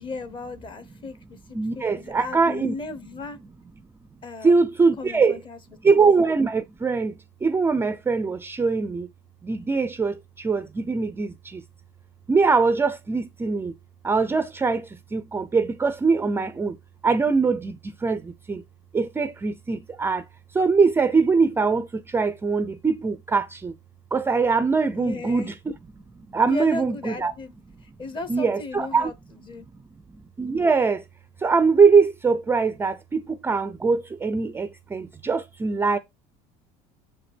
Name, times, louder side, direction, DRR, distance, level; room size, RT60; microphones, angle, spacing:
voice 1, 0.0-3.4 4.2-4.6 5.0-5.6 5.9-6.0 24.9-25.5 26.5-27.5 28.0-29.7, left 3 dB, 30° left, 1.0 m, -36 dB
voice 2, 1.5-2.7 4.4-5.4 5.8-7.1 7.4-9.1 9.4-11.6 12.3-13.7 14.0-16.8 17.0-18.6 18.9-20.2 20.5-23.7 24.1-25.5 26.3-27.3 28.3-29.1 30.4-31.0 31.4-36.0, right 4 dB, 15° right, 0.4 m, -22 dB
7.1 x 5.0 x 3.3 m
cardioid pair, 130°, 16 cm